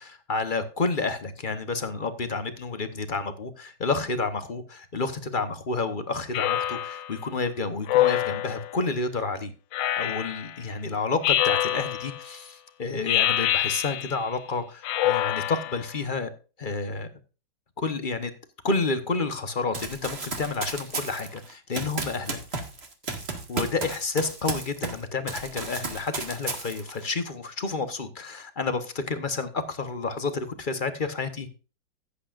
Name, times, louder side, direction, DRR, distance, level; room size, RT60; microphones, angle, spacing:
voice 1, 0.0-9.5 10.0-16.3 16.6-17.1 17.8-18.3 18.6-22.4 23.5-31.5, left 4 dB, 35° left, 10 dB, 0.9 m, -30 dB
Speech synthesizer, 6.3-7.1 7.9-8.8 9.7-10.5 11.2-12.2 13.1-14.3 14.8-15.9, left 13 dB, 75° left, 1.4 m, -25 dB
Run, 19.7-25.0 25.3-27.0, right 3 dB, 35° right, 1.9 m, -33 dB
16.0 x 8.5 x 2.5 m, 0.34 s
omnidirectional pair, 2.1 m